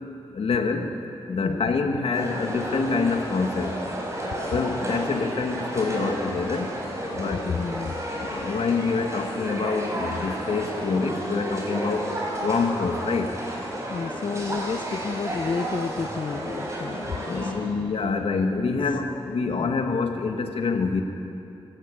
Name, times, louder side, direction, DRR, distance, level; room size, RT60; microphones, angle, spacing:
voice 1, 0.3-0.9 1.3-3.8 4.5-6.7 7.1-7.5 8.1-12.1 12.4-13.3 17.1-21.0, left 4 dB, 75° left, 5 dB, 1.9 m, -26 dB
voice 2, 1.4-1.7 7.2-8.0 13.9-17.9 19.6-19.7, left 5 dB, 55° left, 7 dB, 0.6 m, -31 dB
sound 1, 2.1-17.5, right 1 dB, 30° right, 4.9 m, -32 dB
25.5 x 14.5 x 8.6 m, 2.8 s
wide cardioid pair, 110°, 10 cm